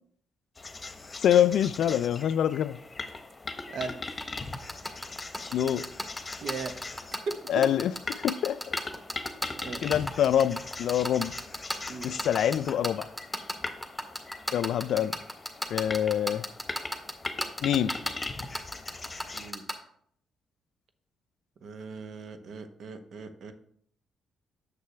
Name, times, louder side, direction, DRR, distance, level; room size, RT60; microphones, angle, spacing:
sound 1, 0.5-19.5, left 3 dB, 30° left, 1.0 m, -40 dB
voice 1, 1.2-2.8 5.5-5.9 7.5-7.9 8.2-8.6 9.8-11.3 12.0-13.1 14.5-15.2 15.7-16.4 17.6-17.9, left 10 dB, 70° left, 0.3 m, -25 dB
voice 2, 3.7-4.3 6.4-6.7 7.3-7.4 9.6-10.0 11.9-12.1 19.3-19.7 21.6-23.5, right 4 dB, 65° right, 0.9 m, -38 dB
sound 2, 4.2-19.7, equal, 10° right, 1.9 m, -32 dB
7.5 x 6.4 x 3.4 m
hypercardioid pair, 50°, 0 cm